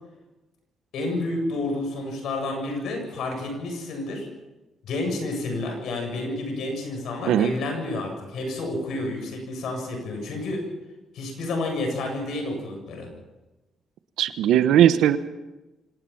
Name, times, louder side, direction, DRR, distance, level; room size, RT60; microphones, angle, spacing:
voice 1, 0.9-4.3 4.8-10.6 11.1-13.1, left 2 dB, 75° left, 3 dB, 7.9 m, -30 dB
voice 2, 14.2-15.2, right 10 dB, 85° right, 11 dB, 1.2 m, -18 dB
25.5 x 18.5 x 5.8 m, 1.1 s
cardioid pair, 90°, 0 cm